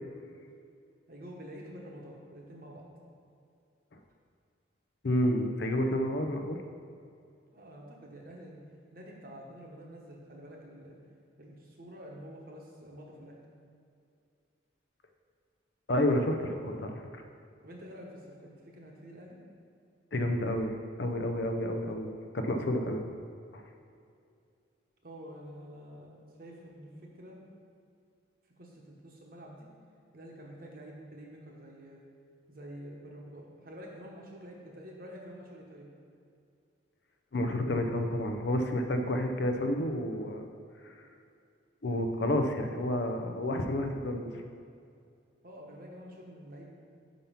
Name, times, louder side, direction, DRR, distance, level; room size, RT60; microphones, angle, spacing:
voice 1, 1.1-2.9 7.5-8.6 8.9-11.0 11.4-13.4 17.6-19.4 25.0-26.1 26.4-27.4 28.6-29.7 30.1-32.0 32.5-35.9 45.4-46.7, equal, 45° right, -1 dB, 1.1 m, -48 dB
voice 2, 5.0-6.6 15.9-17.2 20.1-22.1 22.3-23.0 23.5-23.6 37.3-40.5 40.8-40.9 41.8-44.3, left 1 dB, 60° left, 5 dB, 0.5 m, -30 dB
5.6 x 5.2 x 5.7 m, 2.4 s
head